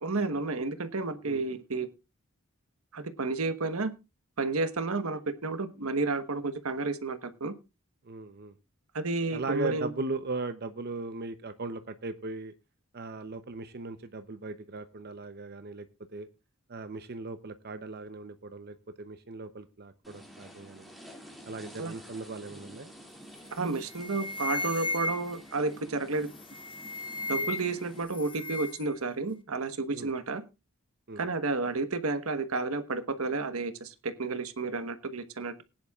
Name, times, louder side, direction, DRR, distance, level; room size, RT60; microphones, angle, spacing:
voice 1, 0.0-1.9 2.9-3.9 4.4-7.5 8.9-9.9 21.8-21.9 23.5-26.3 27.3-30.4 31.2-35.6, right 3 dB, 85° right, 10 dB, 1.2 m, -31 dB
voice 2, 8.0-8.5 9.3-12.5 12.9-15.9 16.1-16.3 16.7-20.9 21.5-22.9 27.4-27.5 29.9-30.1 31.1-31.2, right 3 dB, 50° right, 10 dB, 0.7 m, -38 dB
skating through rain, 20.0-28.0, equal, ahead, 2.4 m, -50 dB
sound 1, 23.4-23.6 23.9-25.5 26.3-27.8 28.1-28.9, left 2 dB, 25° left, 1.2 m, -35 dB
20.0 x 10.0 x 2.4 m, 0.27 s
head